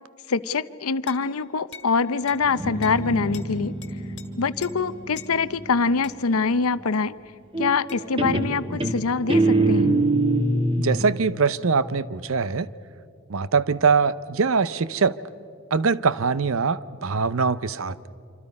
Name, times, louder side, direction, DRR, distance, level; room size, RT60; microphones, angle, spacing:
voice 1, 0.3-3.7 4.4-7.1 7.6-9.9, left 4 dB, 80° left, 15 dB, 0.7 m, -24 dB
sound 1, 1.1-1.3 1.7-1.9 2.3-2.4 2.8-3.0 3.3-3.5 3.8-4.3 4.6-4.8 5.2-5.3 6.0-6.2 7.9-8.1, left 7 dB, 50° left, 2.0 m, -43 dB
Guitar, 2.4-6.0 7.5-11.1, right 2 dB, 25° right, 1.4 m, -24 dB
voice 2, 10.8-12.7 13.3-15.2 15.7-18.0, right 5 dB, 70° right, 16 dB, 0.7 m, -22 dB
26.5 x 26.0 x 5.4 m, 2.5 s
head